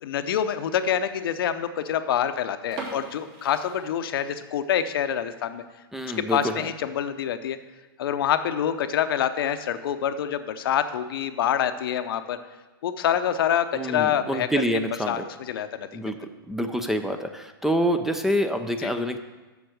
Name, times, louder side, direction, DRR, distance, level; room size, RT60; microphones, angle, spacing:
voice 1, 0.0-5.6 6.2-7.6 8.0-12.4 12.8-14.5 15.1-15.9 18.8-18.9, left 9 dB, 70° left, 10 dB, 0.7 m, -26 dB
sound 1, 2.7-4.5 4.9-5.0 5.5-5.7 6.1-6.2 6.5-6.6 7.3-7.6, right 3 dB, 45° right, 3.1 m, -40 dB
voice 2, 5.9-6.7 13.7-15.2 15.9-16.1 16.5-19.2, equal, 5° right, 7 dB, 0.5 m, -26 dB
7.1 x 6.8 x 6.4 m, 1.2 s
hypercardioid pair, 125°, 13 cm